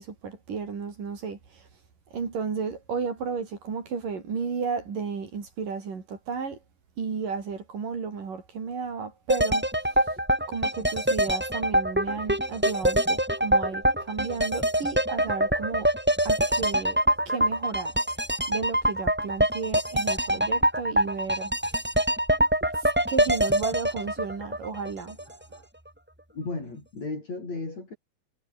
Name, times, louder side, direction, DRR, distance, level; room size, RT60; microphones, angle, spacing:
voice 1, 0.0-1.7 2.1-6.6 7.0-10.2 10.5-15.9 16.3-17.0 17.3-18.0 18.5-21.8 22.8-25.7, right 5 dB, 75° right, 5.9 m, -33 dB
sound 1, 9.3-25.2 25.5-25.6, right 1 dB, 5° right, 1.8 m, -24 dB
voice 2, 26.3-28.0, left 3 dB, 50° left, 9.3 m, -34 dB
omnidirectional pair, 3.8 m